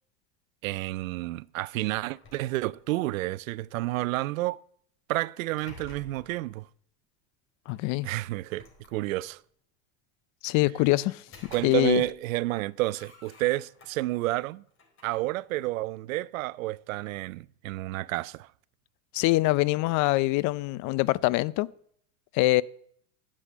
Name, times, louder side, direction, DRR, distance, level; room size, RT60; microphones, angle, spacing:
voice 1, 0.6-4.6 5.1-6.7 8.0-9.4 11.5-14.6 15.0-18.5, right 18 dB, 85° right, 0.5 m, -30 dB
sound 1, 2.0-3.2 5.1-6.5 7.7-7.8 8.3-9.4 11.0-12.2 12.5-14.2 14.7-16.3, left 2 dB, 30° left, 4.4 m, -52 dB
voice 2, 7.7-8.1 10.4-11.2 11.6-12.0 19.1-21.7 22.3-22.6, left 20 dB, 50° left, 0.5 m, -24 dB
9.9 x 7.6 x 8.5 m
supercardioid pair, 110°, 40 cm